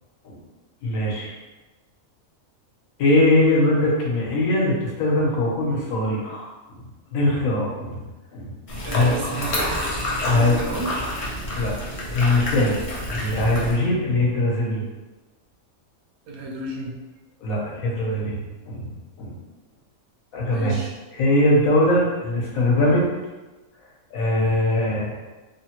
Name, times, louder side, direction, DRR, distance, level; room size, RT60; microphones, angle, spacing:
voice 1, 0.8-1.3 3.0-6.8 7.1-8.0 8.3-8.5 8.9-9.2 10.2-10.6 11.5-11.7 12.1-12.8 13.1-14.9 17.4-18.4 18.7-18.9 19.2-19.4 20.3-20.8 21.1-23.1 24.1-25.2, left 1 dB, 75° left, -3 dB, 1.2 m, -21 dB
sound 1, 8.7-13.7, left 1 dB, 50° left, 0.4 m, -28 dB
voice 2, 8.8-9.8 10.3-11.1 12.9-13.3 16.3-17.0 20.5-20.9, right 2 dB, 80° right, -1 dB, 1.1 m, -32 dB
3.4 x 2.1 x 2.8 m, 1.2 s
omnidirectional pair, 1.5 m